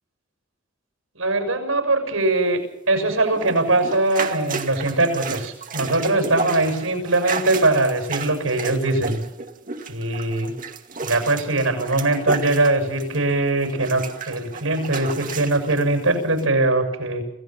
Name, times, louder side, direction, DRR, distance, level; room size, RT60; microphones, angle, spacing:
voice 1, 1.2-2.6 2.9-9.2 9.9-10.5 11.0-17.2, right 2 dB, 85° right, 6 dB, 6.9 m, -21 dB
sound 1, 3.3-13.3 13.6-15.8 16.4-16.5, right 4 dB, 40° right, 2.1 m, -32 dB
27.5 x 17.0 x 6.0 m, 0.81 s
head